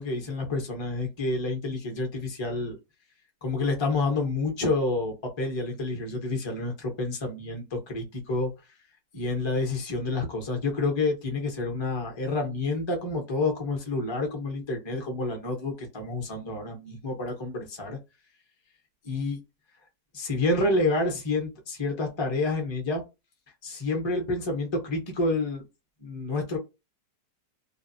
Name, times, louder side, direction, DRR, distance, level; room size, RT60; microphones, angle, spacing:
voice 1, 0.0-2.8 3.4-8.5 9.1-18.0 19.0-19.4 20.1-23.0 23.6-25.6 26.0-26.6, left 2 dB, 25° left, 2 dB, 0.7 m, -29 dB
3.0 x 2.3 x 2.6 m, 0.24 s
omnidirectional pair, 2.0 m